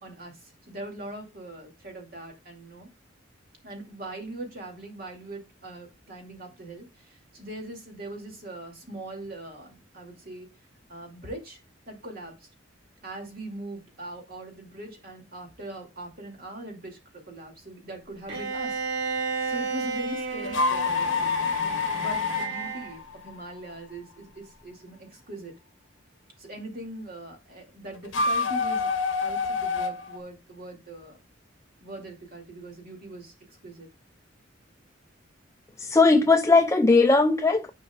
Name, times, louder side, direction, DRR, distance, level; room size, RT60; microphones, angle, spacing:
voice 1, 0.0-0.4 0.7-2.9 3.6-10.5 10.9-11.6 11.9-12.5 13.0-18.8 19.5-21.4 21.9-25.5 26.4-28.9 29.2-31.2 31.8-33.9, right 1 dB, 50° right, 2.4 m, -41 dB
Bowed string instrument, 18.3-23.0, right 4 dB, 70° right, 1.9 m, -32 dB
sound 1, 20.4-23.7 28.0-30.2, left 4 dB, 75° left, 1.0 m, -27 dB
voice 2, 35.8-37.7, left 3 dB, 15° left, 0.4 m, -19 dB
10.5 x 5.1 x 2.3 m
head